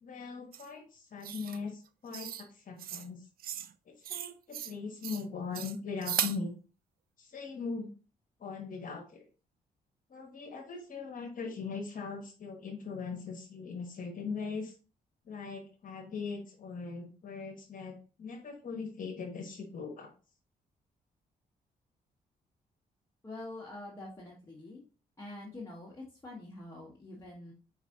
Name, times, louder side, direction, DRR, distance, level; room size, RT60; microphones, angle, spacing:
voice 1, 0.0-3.2 3.9-6.5 7.2-7.9 8.4-9.2 10.1-14.7 15.2-20.1, left 5 dB, 55° left, 2 dB, 1.0 m, -40 dB
sound 1, 0.5-0.7 1.2-1.6 2.1-2.5 2.8-3.1 3.4-3.7 4.0-4.7 5.0-5.2 5.5-6.4, right 10 dB, 65° right, 0.4 m, -36 dB
voice 2, 23.2-24.9 25.2-27.5, left 2 dB, 20° left, -5 dB, 1.4 m, -45 dB
4.8 x 3.9 x 2.8 m, 0.35 s
cardioid pair, 70°, 17 cm